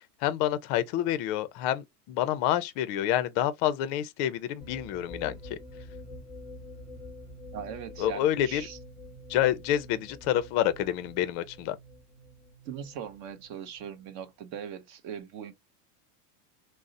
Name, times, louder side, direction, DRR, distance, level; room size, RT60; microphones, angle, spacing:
voice 1, 0.2-5.6 8.0-8.7 9.3-11.8, left 12 dB, 40° left, 0.5 m, -28 dB
sound 1, 4.6-14.2, left 1 dB, 5° right, 1.0 m, -47 dB
voice 2, 7.5-8.8 12.6-15.5, right 8 dB, 40° right, 0.6 m, -40 dB
3.7 x 2.0 x 2.5 m
supercardioid pair, 145°, 47 cm